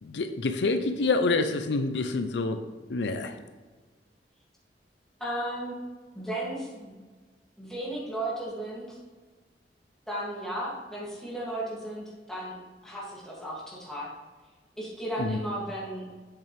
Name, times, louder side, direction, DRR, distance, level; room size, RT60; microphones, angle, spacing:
voice 1, 0.0-2.6 2.9-3.4 15.2-15.4, left 3 dB, 80° left, 8 dB, 0.5 m, -27 dB
voice 2, 5.2-5.7 6.1-7.0 7.6-9.0 10.1-12.5 12.8-14.1 14.8-16.1, right 1 dB, 5° left, -7 dB, 2.4 m, -35 dB
8.1 x 6.9 x 3.4 m, 1.3 s
head